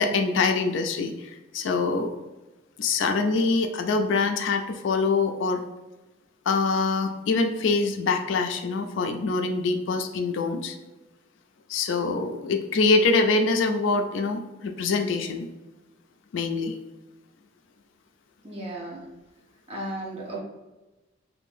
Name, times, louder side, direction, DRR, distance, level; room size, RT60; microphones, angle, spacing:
voice 1, 0.0-2.1 2.8-5.6 6.5-10.8 11.7-15.5 16.3-16.7, left 4 dB, 70° left, 5 dB, 0.4 m, -24 dB
voice 2, 18.4-19.0 19.7-20.4, right 1 dB, 30° right, -3 dB, 0.8 m, -34 dB
3.5 x 2.6 x 2.5 m, 1.1 s
head